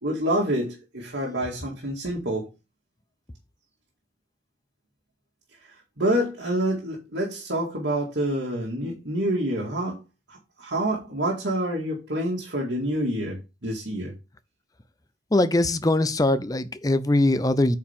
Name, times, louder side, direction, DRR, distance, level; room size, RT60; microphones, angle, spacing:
voice 1, 0.0-2.5 6.0-10.0 10.3-14.1, right 1 dB, 85° right, 2.2 m, -27 dB
voice 2, 15.3-17.8, left 1 dB, 20° left, 0.6 m, -21 dB
8.6 x 4.8 x 3.7 m
head